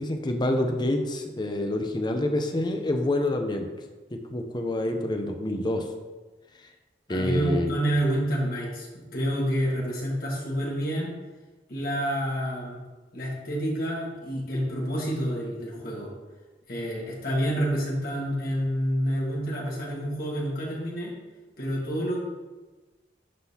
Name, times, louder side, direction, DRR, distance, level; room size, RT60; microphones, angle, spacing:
voice 1, 0.0-3.7 4.3-5.8 7.1-7.8, left 1 dB, 25° left, 5 dB, 0.6 m, -27 dB
voice 2, 7.1-11.1 11.7-12.8 13.1-16.1 16.7-21.1 21.6-22.2, equal, 55° left, -3 dB, 1.6 m, -28 dB
11.5 x 3.8 x 2.8 m, 1.2 s
head